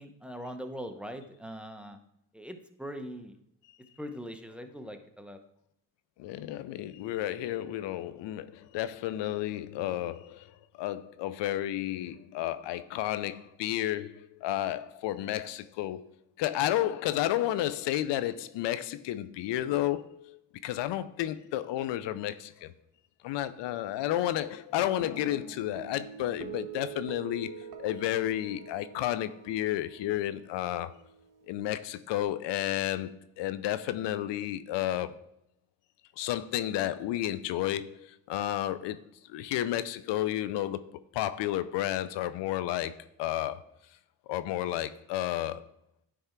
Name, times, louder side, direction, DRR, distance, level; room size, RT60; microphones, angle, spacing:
voice 1, 0.0-2.0 2.3-3.4 4.0-5.4, equal, 5° right, 0.8 m, -41 dB
voice 2, 6.2-16.0 16.4-22.7 23.2-30.9 31.5-35.2 36.2-39.0 39.3-43.7 44.3-45.7, left 13 dB, 80° left, 0.5 m, -32 dB
Guitar, 25.0-31.6, right 8 dB, 50° right, 1.1 m, -46 dB
10.0 x 3.5 x 4.5 m
cardioid pair, 75°, 42 cm